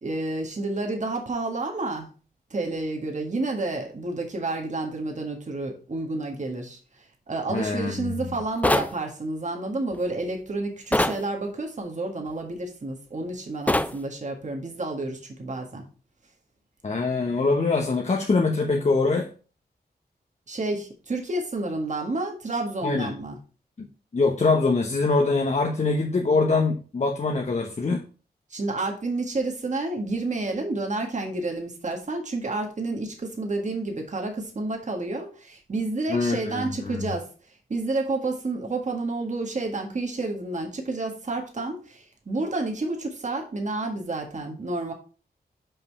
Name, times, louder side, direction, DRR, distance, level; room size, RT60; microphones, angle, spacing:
voice 1, 0.0-2.1 2.5-15.8 20.5-23.4 28.5-37.3 37.7-44.9, right 2 dB, 45° right, 1.7 m, -30 dB
voice 2, 7.5-8.1 16.8-19.3 22.8-23.1 24.1-28.0 36.1-37.1, left 3 dB, 45° left, 1.0 m, -23 dB
sound 1, 8.6-8.9 10.9-11.2 13.7-13.9, left 1 dB, 10° left, 0.5 m, -22 dB
5.5 x 5.3 x 5.4 m
wide cardioid pair, 105°, 17 cm